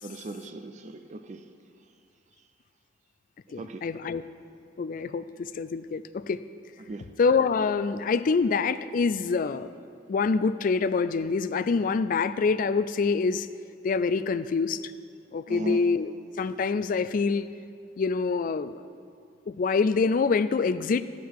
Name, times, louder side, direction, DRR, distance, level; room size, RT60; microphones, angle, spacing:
voice 1, 0.0-1.5 3.6-3.9 6.8-7.1 15.5-15.8, right 2 dB, 40° right, 7 dB, 0.4 m, -37 dB
voice 2, 3.5-4.2 4.8-6.4 7.2-9.7 10.1-13.5 13.8-14.8 15.3-16.1 16.4-17.5 18.0-18.8 19.5-21.0, left 4 dB, 45° left, 14 dB, 0.3 m, -25 dB
12.0 x 8.3 x 4.7 m, 2.3 s
head